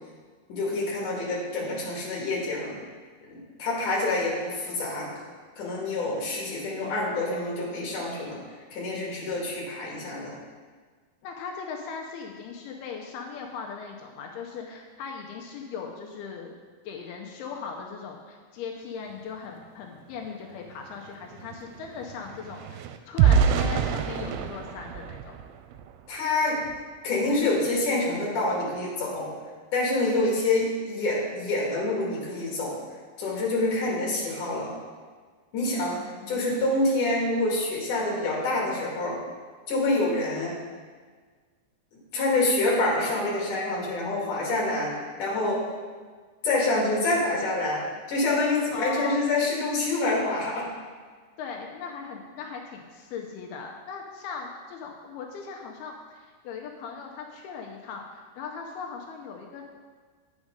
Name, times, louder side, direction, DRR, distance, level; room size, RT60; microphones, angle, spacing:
voice 1, 0.5-2.8 3.2-5.1 5.6-8.4 8.7-10.4 26.1-26.6 27.0-29.3 29.7-32.8 33.2-34.7 35.5-39.2 39.7-40.5 42.1-45.6 46.4-47.8 48.1-50.7, left 2 dB, 60° left, -4 dB, 3.3 m, -27 dB
voice 2, 11.2-16.5 16.8-25.4 35.6-36.5 48.7-49.2 51.4-59.7, left 5 dB, 90° left, 1 dB, 2.6 m, -39 dB
sound 1, 20.2-20.3 20.6-26.1 26.6-26.8 27.2-27.4, right 7 dB, 85° right, 2.5 m, -27 dB
8.8 x 6.2 x 5.1 m, 1.6 s
omnidirectional pair, 4.5 m